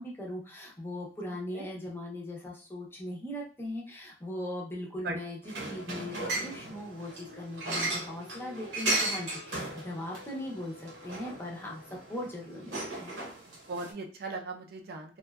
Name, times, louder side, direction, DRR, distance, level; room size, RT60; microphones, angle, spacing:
voice 1, 0.0-13.1, left 1 dB, 15° left, -2 dB, 0.5 m, -39 dB
sound 1, 5.4-13.9, right 2 dB, 85° right, 0.8 m, -36 dB
Singing, 7.2-12.3, left 5 dB, 70° left, 0.3 m, -53 dB
voice 2, 13.5-15.2, right 3 dB, 60° right, 3 dB, 0.4 m, -38 dB
2.5 x 2.2 x 2.2 m, 0.40 s
head